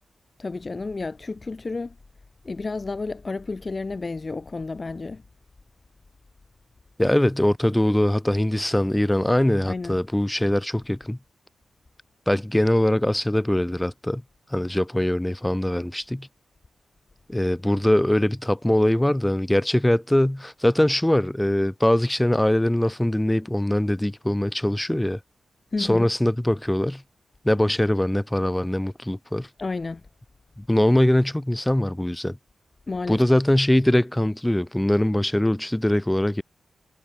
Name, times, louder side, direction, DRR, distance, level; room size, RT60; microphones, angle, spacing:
voice 1, 0.4-1.9 2.4-5.2 9.6-10.0 25.7-26.1 29.6-30.0 32.9-33.2, left 3 dB, 40° left, 0.5 m, -31 dB
voice 2, 7.0-11.2 12.3-14.2 14.5-16.3 17.3-25.2 25.8-27.0 27.4-29.5 30.6-32.4 33.1-36.4, left 1 dB, 10° left, 0.9 m, -22 dB
cardioid pair, 55°, 0 cm